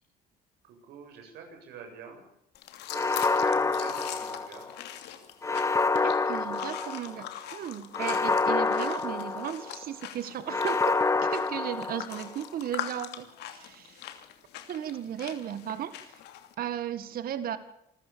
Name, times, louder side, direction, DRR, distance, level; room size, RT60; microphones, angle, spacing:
voice 1, 0.6-2.3 3.0-4.7, right 6 dB, 80° right, 4 dB, 7.3 m, -47 dB
sound 1, 2.5-16.5, left 11 dB, 80° left, 2.8 m, -42 dB
sound 2, 2.9-4.8 5.4-7.2 7.9-9.8 10.5-12.3, left 3 dB, 15° left, 1.1 m, -27 dB
voice 2, 6.0-10.9 11.2-14.0 14.7-16.1 16.6-17.6, right 10 dB, 60° right, 12 dB, 1.9 m, -35 dB
27.5 x 14.5 x 7.0 m, 0.78 s
cardioid pair, 110°, 17 cm